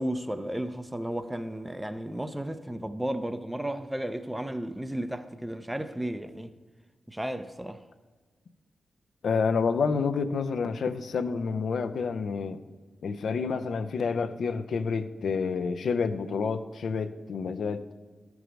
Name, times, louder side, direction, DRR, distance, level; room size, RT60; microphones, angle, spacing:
voice 1, 0.0-6.5 7.1-7.8, right 1 dB, 10° right, 0.6 m, -33 dB
voice 2, 9.2-12.6 13.0-17.8, left 5 dB, 75° left, 0.5 m, -29 dB
13.0 x 4.7 x 5.1 m
supercardioid pair, 45°, 0 cm